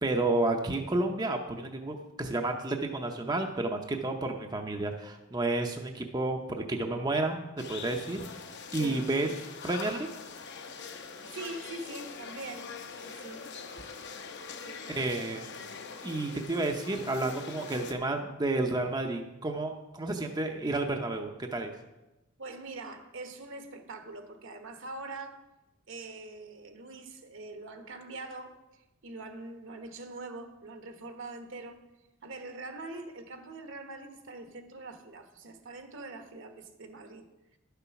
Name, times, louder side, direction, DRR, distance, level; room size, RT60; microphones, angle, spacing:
voice 1, 0.0-7.4 7.7-8.2 8.7-9.3 9.6-10.1 14.9-15.4 16.0-21.7, right 2 dB, 20° right, 0.6 m, -31 dB
sound 1, 7.6-17.9, left 5 dB, 55° left, 0.9 m, -43 dB
voice 2, 8.8-9.1 11.3-13.4 14.6-15.1 22.4-25.5 25.9-31.8 32.2-37.2, right 2 dB, 65° right, 1.2 m, -43 dB
11.5 x 7.0 x 5.8 m
head